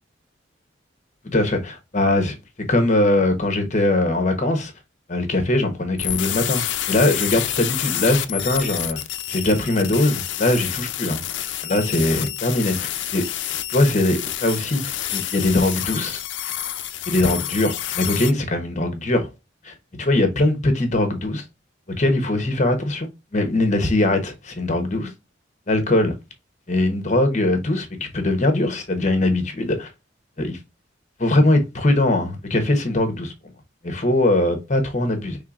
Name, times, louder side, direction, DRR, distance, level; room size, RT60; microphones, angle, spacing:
voice 1, 1.2-2.3 2.7-4.7 5.1-9.0 9.3-11.2 11.6-13.2 13.7-16.2 17.1-19.3 19.6-21.4 22.0-25.1 25.7-26.1 26.7-29.9 30.4-30.6 31.2-33.3 33.8-35.4, left 1 dB, 40° left, 1.0 m, -21 dB
sound 1, 6.0-18.3, left 12 dB, 75° left, 0.5 m, -28 dB
5.5 x 3.3 x 2.4 m
head